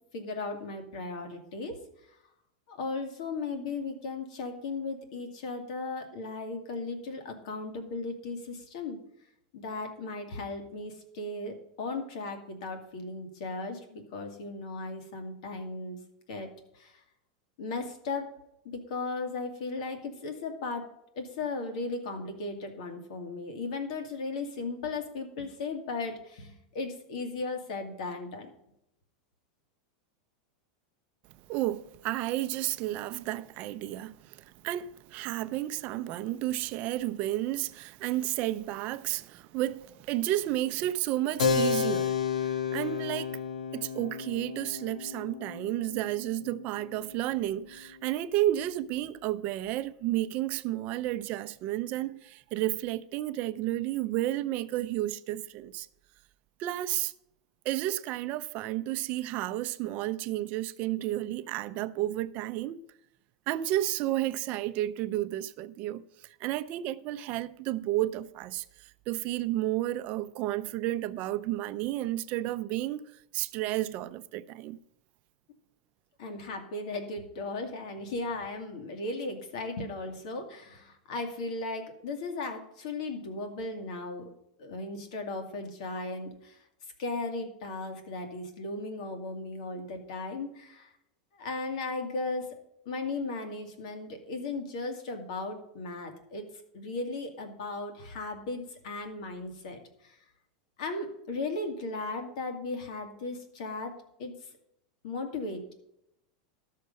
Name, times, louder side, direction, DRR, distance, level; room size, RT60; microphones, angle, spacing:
voice 1, 0.1-1.8 2.1-2.2 2.7-9.0 9.5-16.0 16.3-17.0 17.6-18.3 18.6-20.9 21.1-28.5 76.2-84.3 84.6-86.6 87.0-90.9 91.3-92.6 92.9-96.4 96.7-100.2 100.8-104.5 105.0-105.7, left 3 dB, 70° left, 2.2 m, -36 dB
voice 2, 31.5-43.4 43.7-55.9 56.6-57.1 57.6-62.8 63.5-74.8, right 14 dB, 45° right, 0.5 m, -32 dB
Keyboard (musical), 41.4-47.5, left 6 dB, 90° left, 1.1 m, -32 dB
13.0 x 6.6 x 5.3 m
supercardioid pair, 140°, 4 cm